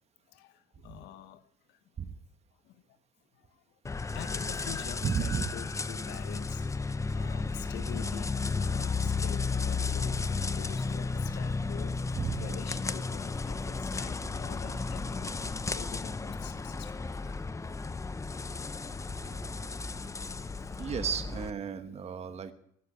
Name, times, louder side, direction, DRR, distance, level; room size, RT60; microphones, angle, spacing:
voice 1, 0.3-1.8 2.6-3.0 3.3-17.4 19.2-21.1, left 12 dB, 85° left, 12 dB, 1.3 m, -48 dB
sound 1, 3.9-21.5, left 4 dB, 20° left, 0.7 m, -33 dB
voice 2, 5.0-5.5 12.2-12.5 20.8-22.5, right 6 dB, 40° right, 9 dB, 1.2 m, -33 dB
12.5 x 10.5 x 10.0 m, 0.73 s
cardioid pair, 110°, 17 cm